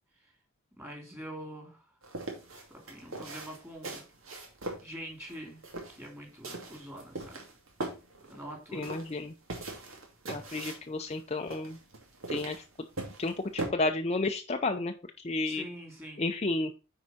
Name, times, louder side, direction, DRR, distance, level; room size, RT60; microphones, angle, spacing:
voice 1, 0.8-1.8 2.7-4.0 4.8-5.6 5.9-7.4 8.3-8.9 15.5-16.2, equal, 10° right, 2 dB, 2.9 m, -44 dB
sound 1, 2.0-13.7, right 2 dB, 65° right, 2.5 m, -41 dB
voice 2, 8.7-9.3 10.3-11.8 12.3-12.6 13.2-15.6 16.2-16.7, left 2 dB, 30° left, 5 dB, 0.6 m, -32 dB
9.6 x 4.8 x 4.3 m, 0.30 s
head